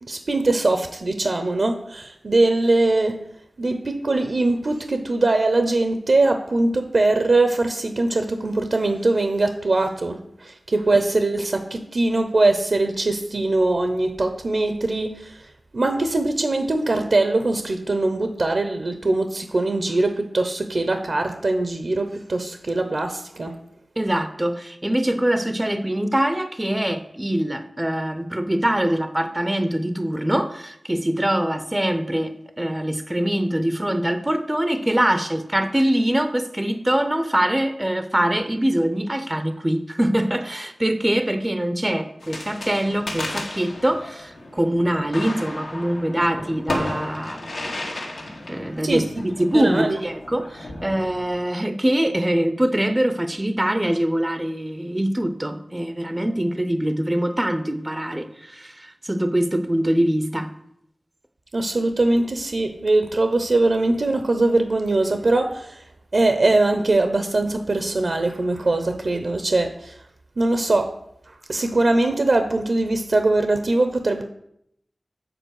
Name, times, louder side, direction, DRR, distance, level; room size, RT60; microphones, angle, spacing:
voice 1, 0.0-3.1 3.6-23.5 48.8-49.0 49.5-50.0 61.5-65.9 66.1-70.0 70.4-70.9 71.5-74.2, right 2 dB, 65° right, 7 dB, 0.7 m, -21 dB
voice 2, 24.0-47.8 48.5-60.5, right 1 dB, 20° right, 10 dB, 0.6 m, -23 dB
sound 1, 42.2-51.4, left 1 dB, 85° left, 1.6 m, -34 dB
7.9 x 4.3 x 6.3 m, 0.75 s
wide cardioid pair, 60°, 0 cm